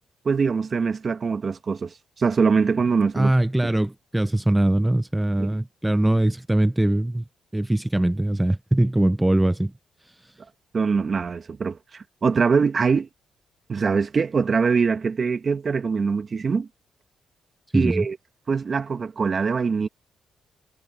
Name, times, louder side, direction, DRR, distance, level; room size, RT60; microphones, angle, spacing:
voice 1, 0.3-3.3 3.6-3.7 10.7-13.1 13.7-16.7 17.7-18.2 18.5-19.9, right 5 dB, 45° right, 2.0 m, -23 dB
voice 2, 3.1-7.2 7.5-9.7 10.2-10.3 17.7-18.1, right 1 dB, 10° right, 0.7 m, -22 dB
supercardioid pair, 70°, 0 cm